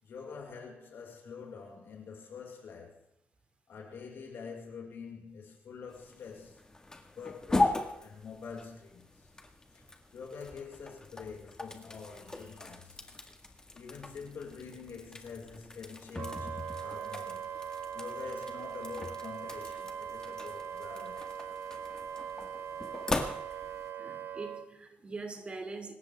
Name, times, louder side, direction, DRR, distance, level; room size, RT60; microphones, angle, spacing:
voice 1, 0.0-3.0 3.7-6.6 7.0-9.2 9.7-9.8 10.1-13.0 13.7-17.5 17.9-21.4, left 5 dB, 75° left, 5.5 m, -46 dB
sound 1, 5.9-23.9, left 2 dB, 15° left, 1.8 m, -39 dB
Wind instrument woodwind instrument, 16.1-24.6, right 8 dB, 75° right, 1.2 m, -41 dB
voice 2, 23.2-23.7 24.0-25.9, right 3 dB, 30° right, 2.7 m, -43 dB
26.0 x 13.5 x 3.6 m
wide cardioid pair, 150°, 4 cm